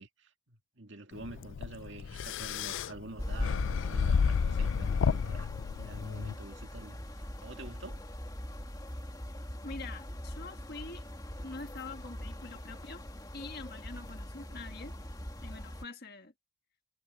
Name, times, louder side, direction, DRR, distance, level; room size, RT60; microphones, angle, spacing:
voice 1, 0.0-5.5 5.8-8.1, right 2 dB, 65° right, 2.0 m, -47 dB
sound 1, 1.2-6.3, left 6 dB, 70° left, 0.4 m, -31 dB
sound 2, 3.2-15.9, equal, 20° left, 2.1 m, -42 dB
voice 2, 9.6-11.0 11.4-13.0 13.3-14.9 15.4-16.3, left 3 dB, 50° left, 1.6 m, -45 dB
head